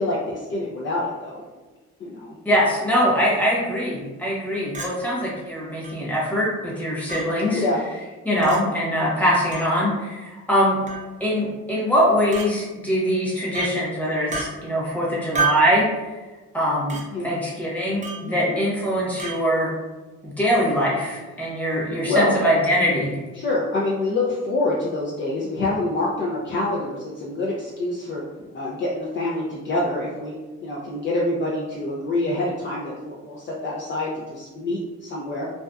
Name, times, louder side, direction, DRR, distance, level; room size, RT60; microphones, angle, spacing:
voice 1, 0.0-1.4 2.0-2.4 7.5-7.9 17.1-17.4 18.2-18.5 22.1-22.4 23.3-28.2 28.5-30.3 30.6-35.5, left 2 dB, 40° left, -5 dB, 0.5 m, -26 dB
voice 2, 2.4-7.6 8.2-10.8 11.2-15.8 16.5-17.0 17.2-19.7 20.2-23.1, equal, 5° left, -6 dB, 1.0 m, -22 dB
Chink clink, 4.7-4.9 5.8-5.9 7.1-7.2 8.4-8.6 9.5-9.7 10.9-11.1 12.3-12.5 13.5-13.7 14.3-14.5 15.3-15.7 16.9-17.0 18.0-18.2 19.2-19.4, right 4 dB, 25° right, 0.6 m, -27 dB
2.5 x 2.2 x 2.2 m, 1.2 s
cardioid pair, 90°, 30 cm